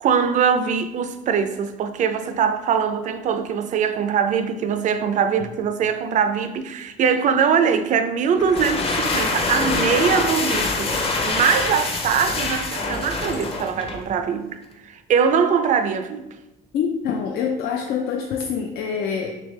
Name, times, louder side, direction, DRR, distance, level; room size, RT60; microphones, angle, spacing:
voice 1, 0.0-10.9 11.2-14.5 14.8-16.2, right 7 dB, 45° right, 0.4 m, -22 dB
sound 1, 8.4-14.1, left 3 dB, 35° left, 0.6 m, -25 dB
voice 2, 16.7-19.3, left 7 dB, 75° left, 0.4 m, -25 dB
3.5 x 3.3 x 3.1 m
cardioid pair, 110°, 17 cm